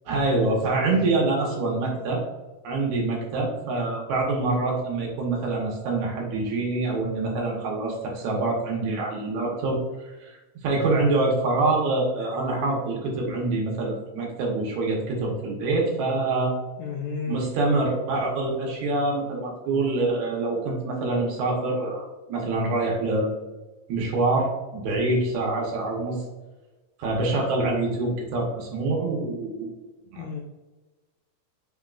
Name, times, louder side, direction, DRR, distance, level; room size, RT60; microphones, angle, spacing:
voice 1, 0.1-2.2 2.6-9.8 10.2-16.5 17.3-23.4 23.9-26.2 27.0-29.7, right 2 dB, 70° right, -2 dB, 2.1 m, -25 dB
voice 2, 16.8-17.5 30.1-30.4, left 5 dB, 90° left, -1 dB, 1.6 m, -32 dB
5.8 x 3.6 x 2.3 m, 1.1 s
omnidirectional pair, 3.8 m